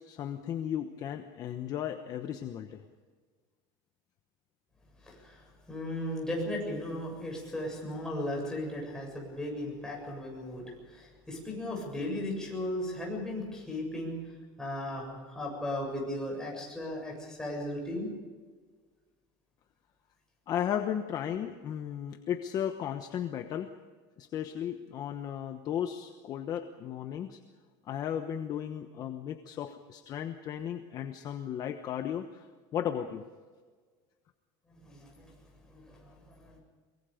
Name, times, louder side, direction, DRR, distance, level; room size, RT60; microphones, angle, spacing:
voice 1, 0.0-2.8 20.5-23.7 24.2-27.4 27.8-32.5 32.7-33.2, left 9 dB, 35° left, 7 dB, 1.1 m, -35 dB
voice 2, 5.0-14.1 14.6-18.1 34.7-35.3 35.7-36.6, left 1 dB, 5° left, -2 dB, 7.4 m, -36 dB
23.5 x 22.5 x 5.2 m, 1.5 s
cardioid pair, 160°, 11 cm